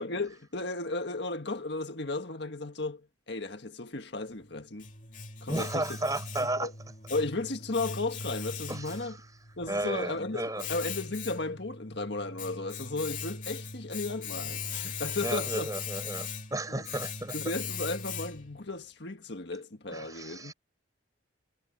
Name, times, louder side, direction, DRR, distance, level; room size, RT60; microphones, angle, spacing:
voice 1, 0.0-4.9 5.4-5.8 6.4-6.7 7.1-9.2 9.6-15.7 16.7-16.8 17.3-20.5, left 2 dB, 60° left, 1.7 m, -35 dB
Domestic sounds home sounds, 4.3-18.6, left 5 dB, 40° left, 2.6 m, -39 dB
voice 2, 5.5-6.7 8.7-9.2 9.7-10.6 15.2-17.4 19.9-20.5, right 1 dB, 20° right, 5.3 m, -34 dB
head